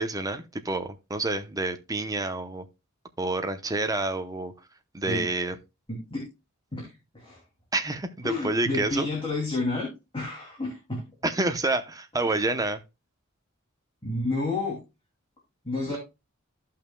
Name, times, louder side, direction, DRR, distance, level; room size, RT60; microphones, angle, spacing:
voice 1, 0.0-2.6 3.2-4.5 4.9-5.6 7.7-9.1 11.2-12.8 15.9-16.0, right 2 dB, 15° right, 0.8 m, -28 dB
voice 2, 5.9-6.3 6.7-7.4 8.2-9.9 10.1-11.0 12.2-12.5 14.0-14.8 15.6-16.0, left 2 dB, 25° left, 2.8 m, -30 dB
14.5 x 5.6 x 2.3 m
head